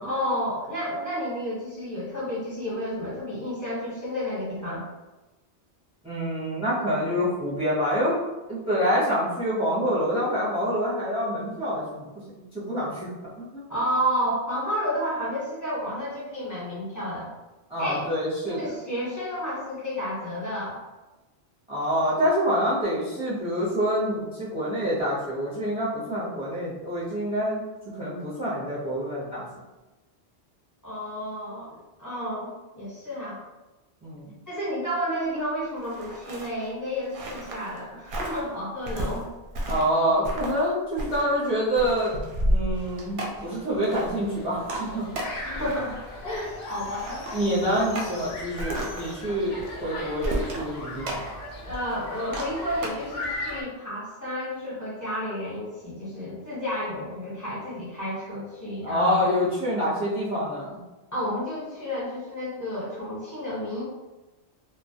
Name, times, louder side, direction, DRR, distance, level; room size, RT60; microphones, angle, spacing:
voice 1, 0.0-4.8 13.7-17.3 17.8-18.1 18.5-20.8 30.8-33.4 34.5-39.3 45.4-46.0 46.2-47.2 51.6-59.3 61.1-63.8, equal, 20° left, -8 dB, 0.7 m, -31 dB
voice 2, 6.0-8.2 8.5-12.1 12.4-13.1 13.5-13.7 17.7-18.7 21.7-27.6 28.0-29.4 34.0-34.3 39.7-42.2 42.5-45.1 47.3-51.2 58.8-60.8, equal, 10° right, -9 dB, 0.4 m, -26 dB
sound 1, 35.8-37.8 38.1-38.5 38.9-40.0 40.2-40.7 41.0-44.3 44.7-44.8 45.2-46.4 46.8-47.3 48.6-50.7 51.1-51.3, equal, 60° right, 0.6 m, -32 dB
sound 2, 42.7-53.6, right 1 dB, 90° right, 0.9 m, -40 dB
sound 3, 43.9-53.6, left 2 dB, 60° left, 0.7 m, -38 dB
2.2 x 2.0 x 2.7 m, 1.1 s
omnidirectional pair, 1.2 m